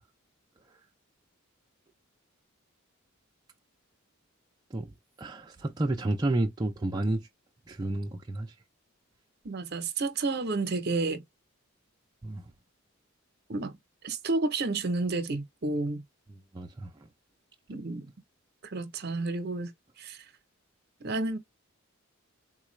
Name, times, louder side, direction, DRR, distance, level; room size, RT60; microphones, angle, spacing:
voice 1, 5.2-7.3 7.7-8.5 12.2-12.4 16.5-17.1, right 2 dB, 20° right, 0.4 m, -31 dB
voice 2, 9.4-11.2 13.5-13.8 14.0-16.0 17.7-18.1 18.6-20.3 21.0-21.4, right 3 dB, 50° right, 0.7 m, -31 dB
3.9 x 2.3 x 3.1 m
head